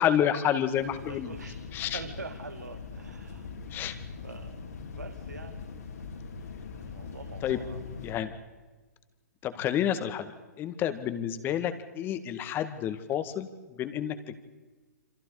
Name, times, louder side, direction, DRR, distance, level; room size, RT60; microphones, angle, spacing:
voice 1, 0.0-1.3 1.7-2.0 3.7-3.9 7.4-7.6 8.0-8.3 9.4-14.2, left 10 dB, 25° left, 10 dB, 2.0 m, -29 dB
sound 1, 0.7-8.2, left 5 dB, 75° left, 4.5 m, -42 dB
voice 2, 1.0-3.5 4.2-4.6 5.0-5.6 6.8-7.8, right 4 dB, 85° right, 7 dB, 1.9 m, -44 dB
28.0 x 26.0 x 5.0 m, 1.3 s
hypercardioid pair, 125°, 9 cm